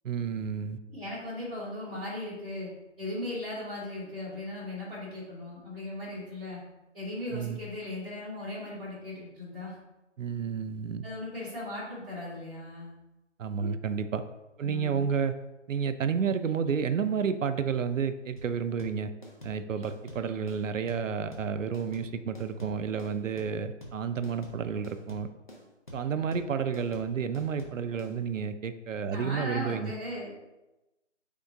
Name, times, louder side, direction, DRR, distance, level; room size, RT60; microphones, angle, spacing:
voice 1, 0.0-0.8 7.3-7.6 10.2-11.0 13.4-14.2 14.6-15.3 15.7-19.1 19.4-25.3 25.9-29.9, right 6 dB, 90° right, 10 dB, 0.5 m, -31 dB
voice 2, 0.9-2.7 3.0-6.6 6.9-9.7 11.0-12.9 14.6-15.1 29.1-30.4, left 1 dB, 5° left, -18 dB, 1.1 m, -38 dB
sound 1, 18.4-28.1, equal, 40° left, 0.8 m, -47 dB
3.7 x 3.5 x 3.7 m, 1.0 s
figure-of-eight pair, 170°, 37 cm